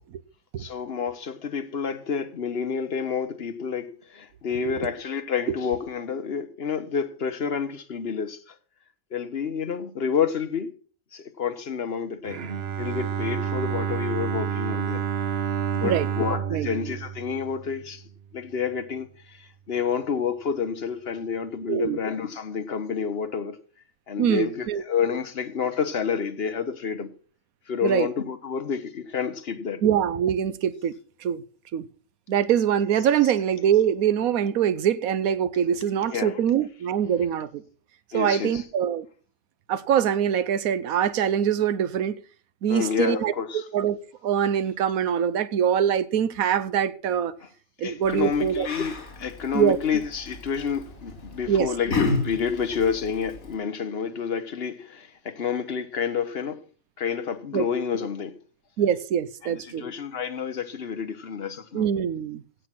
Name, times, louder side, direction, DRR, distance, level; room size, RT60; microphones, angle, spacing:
voice 1, 0.6-8.5 9.1-10.7 11.1-12.4 12.8-15.0 15.7-18.0 18.3-23.6 24.1-27.1 27.7-29.8 36.1-36.4 38.1-38.6 42.7-43.6 47.8-56.6 57.0-58.4 59.4-61.9, left 6 dB, 50° left, 1.2 m, -29 dB
Bowed string instrument, 12.2-18.2, right 8 dB, 50° right, 1.0 m, -29 dB
voice 2, 21.7-22.0 24.2-24.8 27.8-28.1 29.8-30.9 31.2-31.4 31.7-31.9 32.3-37.6 38.1-39.1 39.7-42.2 42.6-44.0 44.2-47.4 47.8-48.7 49.5-49.8 51.5-51.7 57.5-57.7 58.8-59.9 61.7-62.4, right 9 dB, 90° right, 1.2 m, -23 dB
Yell, 48.0-53.5, left 3 dB, 75° left, 3.6 m, -32 dB
16.0 x 6.2 x 6.0 m
omnidirectional pair, 1.5 m